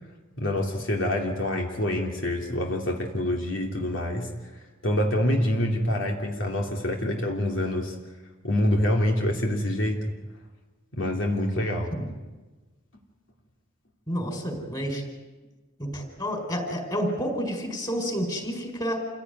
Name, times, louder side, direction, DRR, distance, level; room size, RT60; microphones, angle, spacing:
voice 1, 0.4-4.3 4.8-8.0 8.4-10.1 10.9-11.9, left 1 dB, 70° left, 0 dB, 3.1 m, -26 dB
voice 2, 14.1-15.0 15.8-19.0, equal, 20° left, 4 dB, 5.0 m, -29 dB
28.0 x 17.0 x 9.5 m, 1.2 s
head